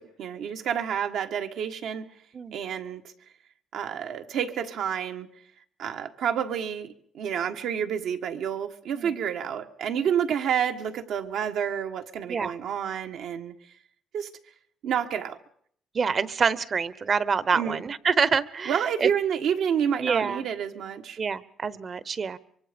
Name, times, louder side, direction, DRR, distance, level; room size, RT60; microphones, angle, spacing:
voice 1, 0.0-2.1 2.5-3.0 3.7-5.3 5.8-13.5 14.1-14.3 14.8-15.4 17.5-17.8 18.7-21.2, right 8 dB, 80° right, 5 dB, 1.5 m, -29 dB
voice 2, 15.9-19.1 20.0-20.4 21.2-22.4, right 5 dB, 45° right, 18 dB, 1.0 m, -26 dB
24.5 x 23.5 x 5.2 m, 0.65 s
cardioid pair, 90°, 0 cm